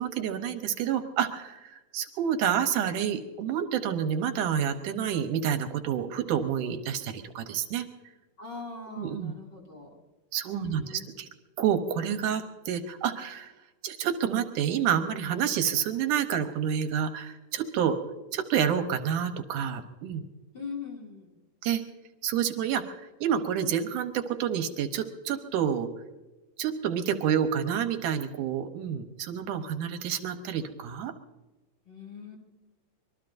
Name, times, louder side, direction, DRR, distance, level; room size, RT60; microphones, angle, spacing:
voice 1, 0.0-7.9 9.0-9.3 10.3-11.3 11.6-13.5 13.8-18.0 18.3-20.3 21.6-21.8 22.2-25.9 26.6-31.1, right 8 dB, 75° right, 7 dB, 2.4 m, -29 dB
voice 2, 8.4-9.9 10.5-11.2 20.5-21.3 31.9-32.4, left 5 dB, 35° left, -1 dB, 2.9 m, -41 dB
25.0 x 21.5 x 2.6 m, 1.1 s
omnidirectional pair, 3.8 m